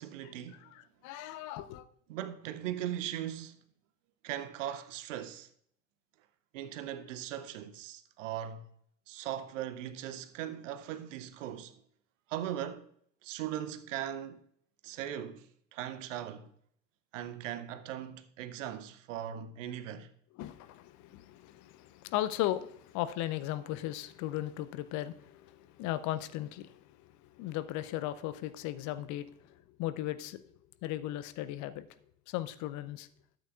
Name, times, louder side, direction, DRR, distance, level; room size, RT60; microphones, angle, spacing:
voice 1, 0.0-0.7 2.1-3.6 4.2-5.5 6.5-8.7 9.1-11.7 12.3-12.9 13.2-14.4 14.8-16.5 17.1-20.1, right 11 dB, 70° right, 0.7 m, -39 dB
voice 2, 0.6-1.8 20.4-30.4 30.8-31.9 32.3-33.1, left 14 dB, 45° left, 0.6 m, -37 dB
12.5 x 8.0 x 2.4 m
figure-of-eight pair, 65°, 40 cm